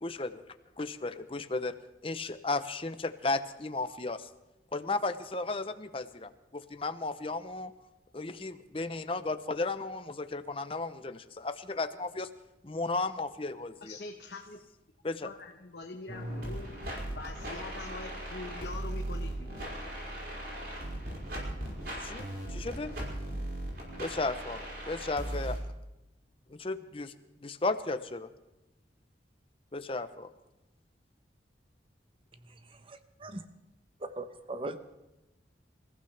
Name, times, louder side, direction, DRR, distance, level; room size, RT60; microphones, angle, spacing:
voice 1, 0.0-0.4 0.8-1.7 2.0-4.3 4.7-7.7 8.1-12.3 12.6-14.0 15.0-15.3 22.0-22.9 24.0-25.6 26.5-27.1 27.4-28.3 29.7-30.3, left 3 dB, 30° left, 10 dB, 0.7 m, -34 dB
voice 2, 13.8-14.6 15.2-16.7 17.1-19.8, left 3 dB, 65° left, 2 dB, 1.1 m, -44 dB
sound 1, 16.1-25.6, right 1 dB, 60° right, 5.4 m, -38 dB
voice 3, 32.4-33.4 34.0-34.8, right 2 dB, 30° right, 9 dB, 0.9 m, -40 dB
27.0 x 15.0 x 3.4 m, 0.96 s
head